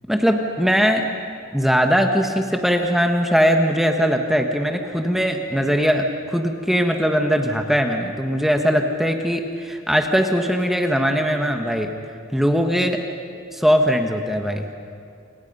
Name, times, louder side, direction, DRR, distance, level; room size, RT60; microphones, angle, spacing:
voice 1, 0.1-1.0 1.5-11.9 12.3-13.0 13.5-14.7, equal, ahead, 3 dB, 1.3 m, -20 dB
29.0 x 26.5 x 5.5 m, 2.3 s
head